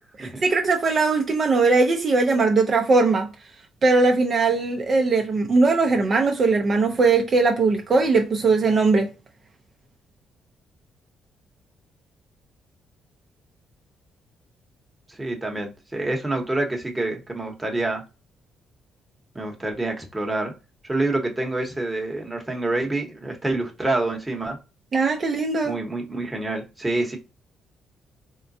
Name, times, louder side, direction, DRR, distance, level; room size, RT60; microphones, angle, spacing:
voice 1, 0.2-3.3 3.8-9.1 24.9-25.7, right 3 dB, 45° right, 0.5 m, -20 dB
voice 2, 15.1-18.0 19.3-20.5 20.8-24.6 25.6-27.2, right 2 dB, 15° right, 1.0 m, -27 dB
3.7 x 2.1 x 2.6 m
cardioid pair, 90°, 0 cm